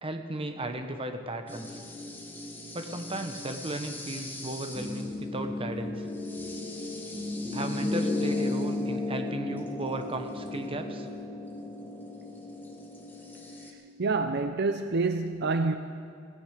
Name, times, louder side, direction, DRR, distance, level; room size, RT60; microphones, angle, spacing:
voice 1, 0.0-1.8 2.7-6.1 7.5-11.1, right 1 dB, 30° right, 1.1 m, -35 dB
sound 1, 1.5-13.7, left 2 dB, 10° left, 1.5 m, -35 dB
voice 2, 14.0-15.8, right 3 dB, 60° right, 0.6 m, -27 dB
16.5 x 15.5 x 5.0 m
head